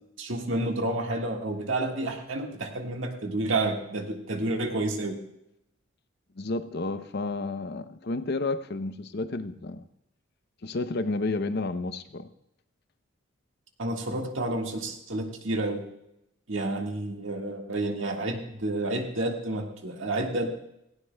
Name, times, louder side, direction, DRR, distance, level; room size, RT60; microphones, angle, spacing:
voice 1, 0.2-5.2 13.8-15.8 16.5-20.5, right 2 dB, 70° right, 2 dB, 1.7 m, -30 dB
voice 2, 6.4-9.8 10.6-12.3, left 3 dB, 50° left, 11 dB, 0.6 m, -31 dB
17.5 x 16.0 x 2.2 m, 0.83 s
head